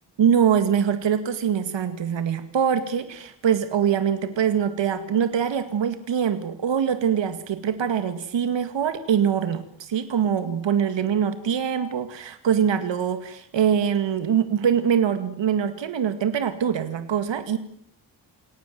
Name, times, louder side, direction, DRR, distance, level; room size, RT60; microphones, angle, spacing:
voice 1, 0.2-17.6, right 8 dB, 85° right, 10 dB, 2.3 m, -23 dB
29.0 x 18.5 x 9.4 m, 0.67 s
cardioid pair, 95°, 43 cm